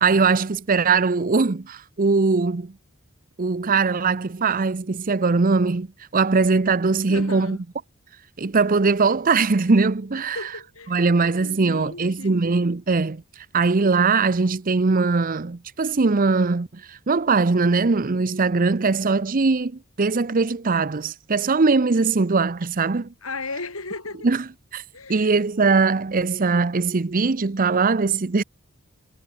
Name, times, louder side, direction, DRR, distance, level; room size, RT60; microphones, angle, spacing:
voice 1, 0.0-2.7 3.4-5.9 6.1-7.6 8.4-10.5 10.9-23.1 24.2-24.8 25.1-28.4, right 4 dB, 40° right, 0.6 m, -21 dB
voice 2, 7.1-7.6 10.3-11.0 11.4-12.4 23.2-24.3 24.9-25.4, left 3 dB, 70° left, 6.9 m, -35 dB
head